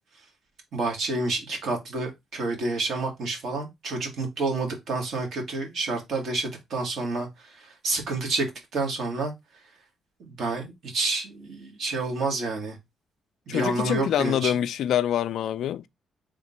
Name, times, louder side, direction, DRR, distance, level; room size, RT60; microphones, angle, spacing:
voice 1, 0.7-7.3 7.8-8.5 8.7-9.3 10.2-12.8 13.5-14.5, right 3 dB, 65° right, 1.6 m, -29 dB
voice 2, 13.5-15.9, left 10 dB, 75° left, 0.3 m, -25 dB
3.6 x 2.5 x 4.1 m
cardioid pair, 90°, 0 cm